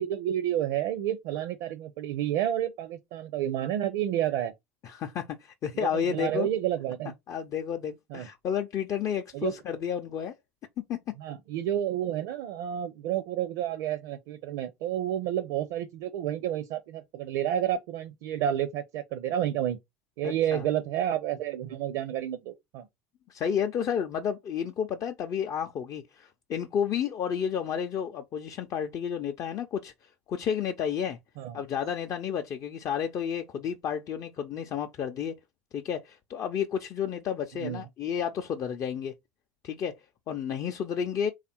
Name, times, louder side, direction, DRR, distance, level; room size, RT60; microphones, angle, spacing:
voice 1, 0.0-4.5 5.7-7.1 8.1-8.3 9.3-9.6 11.2-19.8 20.2-22.9 31.4-31.6 37.5-37.8, right 11 dB, 60° right, 0.6 m, -30 dB
voice 2, 4.8-6.5 7.3-10.3 10.9-11.0 20.2-20.6 23.3-29.9 30.3-31.2 31.5-35.3 35.7-39.1 39.6-40.0 40.3-41.3, left 8 dB, 40° left, 0.5 m, -31 dB
3.4 x 2.4 x 4.3 m
hypercardioid pair, 75°, 8 cm